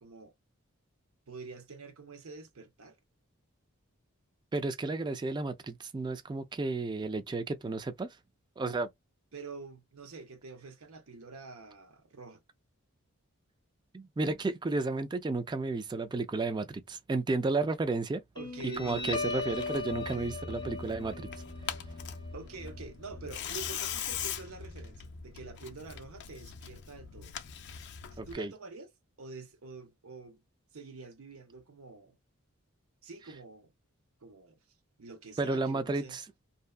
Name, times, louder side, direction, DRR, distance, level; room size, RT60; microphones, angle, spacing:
voice 1, 0.0-0.3 1.3-3.0 9.3-12.4 18.4-19.1 22.3-27.3 28.1-28.9 29.2-30.4 30.7-32.2 33.0-33.7 34.2-34.6 35.0-36.2, right 4 dB, 75° right, 0.7 m, -47 dB
voice 2, 4.5-8.1 8.6-8.9 13.9-18.2 18.8-21.3 28.2-28.5 35.4-36.2, right 3 dB, 20° right, 0.3 m, -32 dB
Guitar, 18.4-25.4, left 3 dB, 20° left, 0.9 m, -39 dB
Tearing, 18.8-28.4, left 9 dB, 55° left, 0.5 m, -42 dB
2.7 x 2.2 x 2.2 m
head